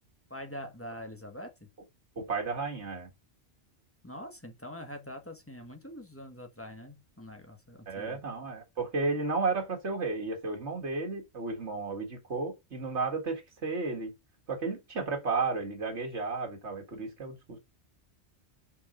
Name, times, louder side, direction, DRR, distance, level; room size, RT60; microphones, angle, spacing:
voice 1, 0.3-1.5 4.0-8.2, equal, 15° left, 1.2 m, -44 dB
voice 2, 2.2-3.1 7.9-14.1 14.5-17.6, right 3 dB, 85° right, 2.2 m, -33 dB
5.5 x 4.6 x 5.1 m
omnidirectional pair, 1.1 m